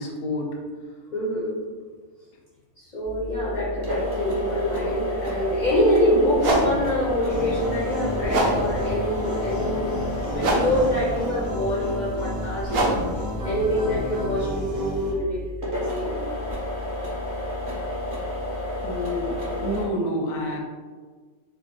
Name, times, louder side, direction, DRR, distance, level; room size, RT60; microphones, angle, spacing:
voice 1, 0.0-0.9 18.8-20.6, left 1 dB, 80° left, 1 dB, 1.0 m, -29 dB
voice 2, 1.1-1.6 2.8-9.9 10.2-13.0 13.4-16.2, equal, 60° left, -5 dB, 0.4 m, -25 dB
sound 1, 3.0-19.9, left 1 dB, 40° right, 0.9 m, -31 dB
sound 2, 5.6-5.7 6.3-15.2, right 1 dB, 60° right, 0.6 m, -28 dB
sound 3, 7.3-15.1, equal, 90° right, 1.4 m, -33 dB
3.9 x 2.2 x 2.9 m, 1.5 s
omnidirectional pair, 1.5 m